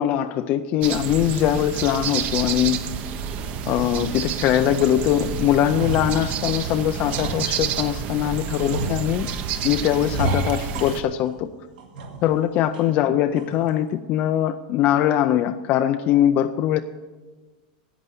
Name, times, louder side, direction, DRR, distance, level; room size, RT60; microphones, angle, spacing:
voice 1, 0.0-2.8 3.7-9.3 9.6-11.5 12.2-16.8, left 11 dB, 35° left, 8 dB, 0.4 m, -21 dB
sound 1, 0.8-11.0, right 8 dB, 30° right, 0.8 m, -29 dB
sound 2, 2.0-2.2 2.6-2.8 3.2-4.1 4.5-5.1 5.4-8.0 8.5-9.5 10.0-11.4 11.8-12.4 12.7-12.8 13.3-13.7, right 2 dB, 70° right, 2.2 m, -32 dB
11.0 x 9.0 x 8.3 m, 1.3 s
supercardioid pair, 160°, 5 cm